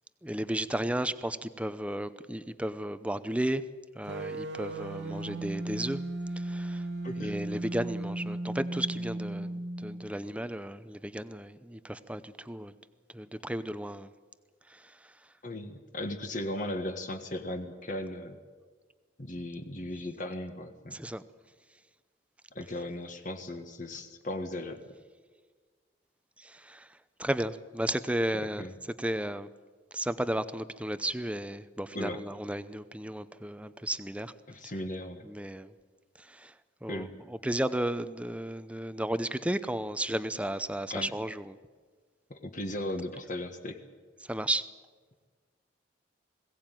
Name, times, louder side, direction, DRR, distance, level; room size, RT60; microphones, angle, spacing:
voice 1, 0.2-3.6 3.9-6.0 6.4-6.8 7.2-12.7 13.1-14.1 14.7-14.9 20.9-21.2 26.4-26.9 27.2-28.7 29.0-29.5 29.9-34.3 34.6-34.7 35.2-35.7 36.2-36.5 36.8-41.6 44.3-44.6, right 1 dB, 5° right, 13 dB, 0.7 m, -34 dB
sound 1, 4.1-10.1, right 2 dB, 85° right, 2.0 m, -36 dB
voice 2, 7.0-7.4 15.4-18.4 19.2-21.0 22.5-24.8 28.3-28.8 31.9-32.2 34.5-35.3 36.9-37.1 40.9-41.1 42.3-43.8, left 1 dB, 45° left, 6 dB, 1.6 m, -37 dB
21.5 x 17.0 x 9.2 m, 1.5 s
head